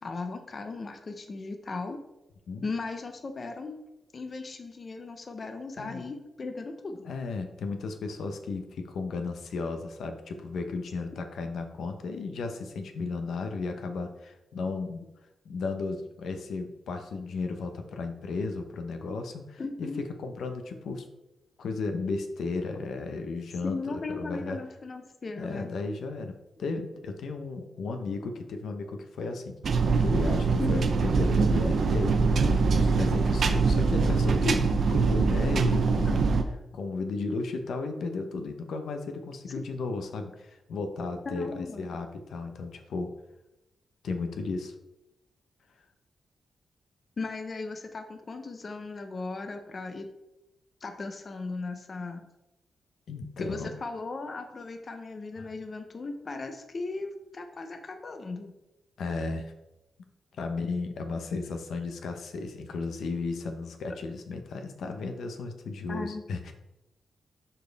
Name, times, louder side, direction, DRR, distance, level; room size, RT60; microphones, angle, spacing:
voice 1, 0.0-2.0 2.6-3.8 4.1-7.1 12.0-12.1 19.6-20.0 23.6-25.7 30.5-30.9 34.3-34.4 36.1-36.2 39.6-39.7 41.3-41.9 47.2-50.1 50.8-52.2 53.4-58.5 65.9-66.2, left 3 dB, 35° left, 6 dB, 0.7 m, -37 dB
voice 2, 7.0-15.0 15.4-21.1 21.6-24.6 25.4-26.3 26.6-36.2 36.7-43.1 44.0-44.7 53.1-53.7 55.4-55.5 59.0-59.5 60.4-66.5, left 3 dB, 80° left, 5 dB, 0.9 m, -34 dB
sound 1, 29.6-36.4, right 4 dB, 55° right, 0.7 m, -23 dB
12.0 x 4.3 x 3.5 m, 0.93 s
wide cardioid pair, 135°, 0 cm